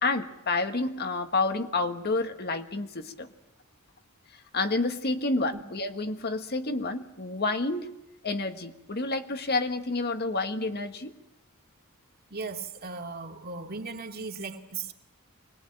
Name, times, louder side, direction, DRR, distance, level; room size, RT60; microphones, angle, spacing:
voice 1, 0.0-3.3 4.5-7.9 8.2-11.1, left 3 dB, 45° left, 1.6 m, -29 dB
voice 2, 12.3-14.9, right 4 dB, 45° right, 2.4 m, -37 dB
25.0 x 20.5 x 9.0 m
head